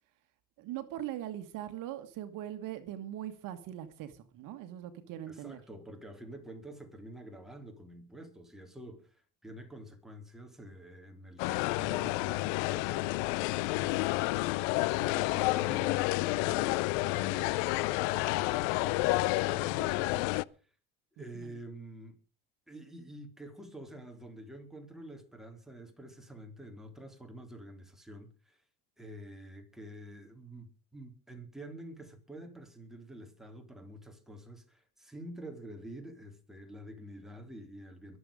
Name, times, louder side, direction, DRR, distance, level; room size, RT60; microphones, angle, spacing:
voice 1, 0.6-5.6 21.2-21.6, right 12 dB, 60° right, 1.8 m, -41 dB
voice 2, 5.3-13.1 13.6-19.2 19.6-20.3 21.1-22.2 22.7-28.6 29.0-38.2, right 1 dB, ahead, 3.9 m, -48 dB
sound 1, 11.4-20.4, left 20 dB, 80° left, 0.6 m, -30 dB
23.0 x 8.0 x 5.2 m
supercardioid pair, 110°, 36 cm